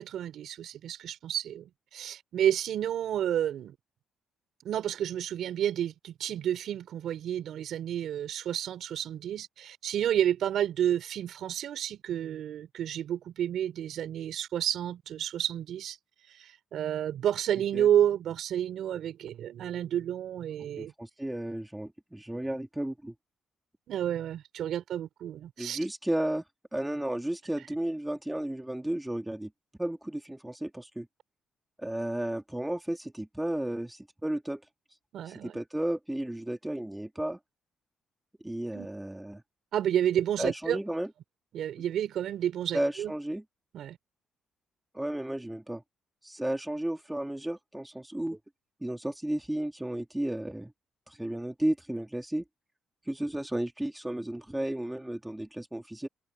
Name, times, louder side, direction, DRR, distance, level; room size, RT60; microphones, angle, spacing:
voice 1, 0.0-3.7 4.6-16.0 16.3-20.9 23.9-25.8 35.1-35.6 38.7-38.9 39.7-40.8 41.5-43.1 43.7-44.0, right 10 dB, 70° right, 5.0 m, -30 dB
voice 2, 20.8-23.1 25.6-26.4 26.7-29.5 29.8-31.1 31.8-34.6 35.4-37.4 38.4-39.4 40.4-41.1 42.7-43.4 44.9-45.8 46.2-48.4 48.8-50.7 51.1-52.4 53.1-56.1, right 1 dB, 5° right, 3.5 m, -33 dB
cardioid pair, 90°, 0 cm